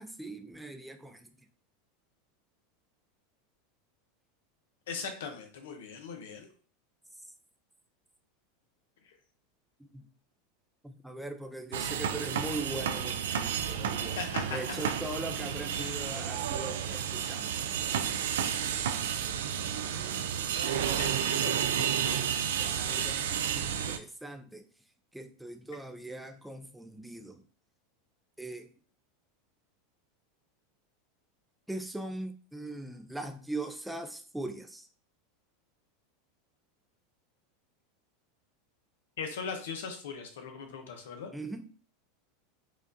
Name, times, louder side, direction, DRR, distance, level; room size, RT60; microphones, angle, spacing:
voice 1, 0.0-1.3 9.8-10.0 10.8-14.2 14.5-17.8 21.7-24.7 25.1-27.4 28.4-28.7 31.7-34.9 41.3-41.7, right 2 dB, 5° right, 0.5 m, -41 dB
voice 2, 4.9-6.5 9.0-9.1 13.7-13.8 14.2-14.8 21.0-21.9 39.2-41.3, left 5 dB, 85° left, 0.8 m, -39 dB
sound 1, 11.7-24.0, right 8 dB, 85° right, 0.3 m, -31 dB
4.7 x 2.5 x 2.6 m
supercardioid pair, 125°, 0 cm